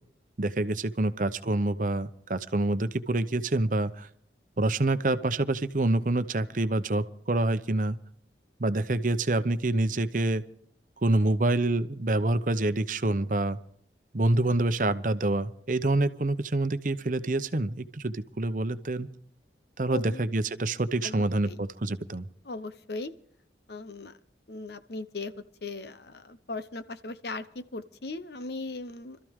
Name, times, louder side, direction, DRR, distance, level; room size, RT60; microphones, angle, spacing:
voice 1, 0.4-4.1 4.6-8.0 8.6-10.4 11.0-13.6 14.1-19.1 19.8-22.3, right 2 dB, 45° right, 12 dB, 0.8 m, -27 dB
voice 2, 19.9-20.2 21.0-21.6 22.4-23.1 23.7-24.1 24.5-25.3 25.6-29.2, left 3 dB, 70° left, 11 dB, 0.9 m, -38 dB
25.5 x 13.5 x 3.7 m, 0.64 s
head